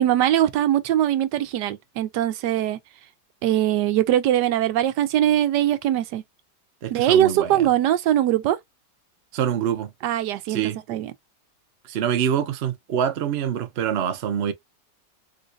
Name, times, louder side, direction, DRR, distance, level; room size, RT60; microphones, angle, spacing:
voice 1, 0.0-2.8 3.4-6.2 6.9-8.6 10.0-10.6 10.9-11.1, right 12 dB, 75° right, 1.2 m, -21 dB
voice 2, 6.8-7.7 9.3-9.9 10.5-10.8 11.9-14.5, right 9 dB, 60° right, 0.6 m, -25 dB
3.8 x 2.5 x 2.5 m
omnidirectional pair, 1.9 m